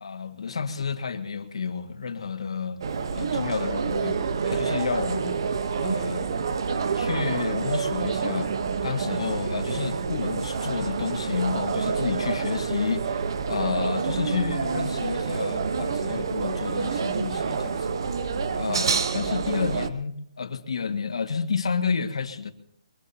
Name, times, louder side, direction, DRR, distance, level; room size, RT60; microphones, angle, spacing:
voice 1, 0.0-2.8 3.1-5.4 5.8-6.3 6.9-8.5 8.8-13.2 13.5-18.0 18.5-22.5, left 5 dB, 65° left, 7 dB, 1.8 m, -30 dB
sound 1, 2.8-19.9, right 5 dB, 45° right, 1.0 m, -28 dB
22.5 x 22.0 x 2.8 m, 0.69 s
hypercardioid pair, 175°, 3 cm